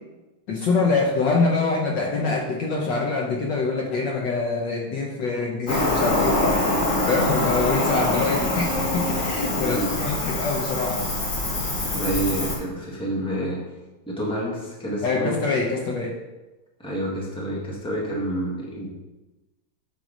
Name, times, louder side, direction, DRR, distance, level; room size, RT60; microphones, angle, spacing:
voice 1, 0.5-6.4 7.1-11.1 15.0-16.2, left 3 dB, 65° left, 0 dB, 1.4 m, -24 dB
Cricket, 5.7-12.5, left 2 dB, 40° left, 1.9 m, -24 dB
voice 2, 9.6-9.9 11.8-13.6 14.1-15.4 16.8-18.9, right 1 dB, 5° left, -4 dB, 1.4 m, -28 dB
8.0 x 4.7 x 5.2 m, 1.1 s
omnidirectional pair, 2.4 m